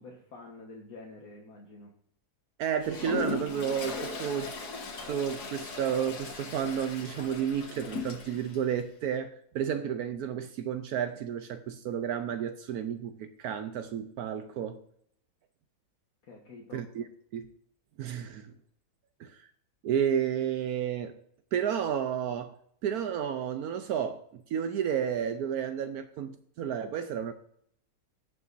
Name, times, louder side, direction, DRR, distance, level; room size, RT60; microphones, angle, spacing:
voice 1, 0.0-1.9 16.3-16.9, left 3 dB, 65° left, 1.8 m, -48 dB
voice 2, 2.6-4.5 5.1-14.8 16.7-17.1 17.3-17.5 18.0-18.5 19.2-19.5 19.8-21.1 21.5-22.5 22.8-27.3, right 8 dB, 75° right, 1.1 m, -31 dB
Toilet flush, 2.8-8.6, left 3 dB, 80° left, 2.0 m, -38 dB
18.0 x 6.0 x 2.6 m
omnidirectional pair, 1.7 m